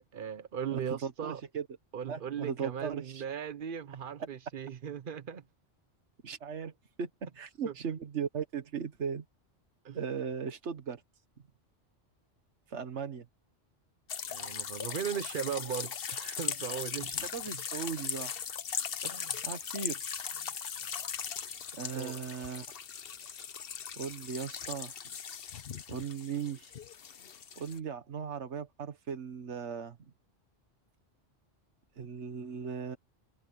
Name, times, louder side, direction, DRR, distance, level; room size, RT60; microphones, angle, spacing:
voice 1, 0.1-1.4 1.9-5.4 7.6-7.7 9.8-10.0 14.3-17.1 17.5-17.6 19.0-19.4 21.9-22.2, right 8 dB, 50° right, 0.9 m, -38 dB
voice 2, 0.7-1.7 2.1-3.2 6.2-6.7 7.0-9.2 9.9-11.0 12.7-13.3 17.1-18.3 19.4-20.1 21.7-22.7 24.0-24.9 25.9-26.7 27.6-30.0 32.0-33.0, right 6 dB, 70° right, 1.7 m, -37 dB
sound 1, 14.1-27.8, left 7 dB, 55° left, 1.1 m, -39 dB
omnidirectional pair, 1.2 m